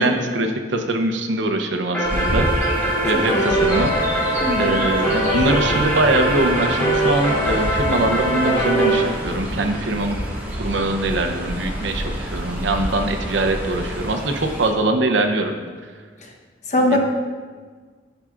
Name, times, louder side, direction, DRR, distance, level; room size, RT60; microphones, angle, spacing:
voice 1, 0.0-2.5 3.0-3.9 4.6-10.2 10.6-15.6 16.9-17.0, right 2 dB, 85° right, 5 dB, 0.7 m, -22 dB
sound 1, 1.9-9.0, right 1 dB, 10° left, 2.2 m, -21 dB
Chirp tweet, 2.0-14.7, equal, 10° right, 1.4 m, -28 dB
voice 2, 3.1-3.5 4.4-4.8 16.2-16.3 16.7-17.0, left 1 dB, 40° left, 0 dB, 0.9 m, -22 dB
12.0 x 5.7 x 2.4 m, 1.5 s
head